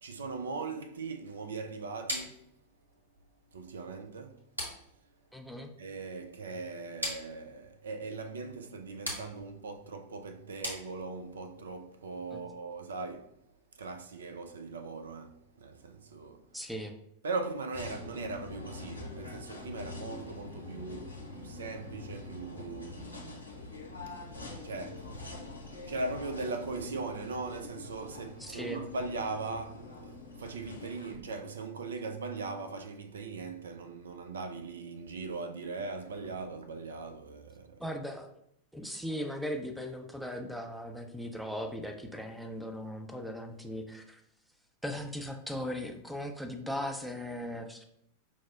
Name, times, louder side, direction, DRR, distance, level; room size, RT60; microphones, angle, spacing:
voice 1, 0.0-2.4 3.5-4.5 5.8-13.3 13.7-16.5 17.2-23.5 24.1-25.3 25.9-37.8, right 3 dB, 65° right, 0.3 m, -40 dB
sound 1, 2.1-11.4, equal, 85° right, 1.0 m, -43 dB
voice 2, 5.3-5.7 12.3-12.4 16.5-16.9 28.4-28.8 37.8-38.3 38.7-44.2 44.8-47.8, equal, ahead, 0.4 m, -38 dB
sound 2, 17.7-31.1, left 3 dB, 85° left, 0.6 m, -45 dB
5.8 x 2.0 x 2.4 m
figure-of-eight pair, 90°, 0 cm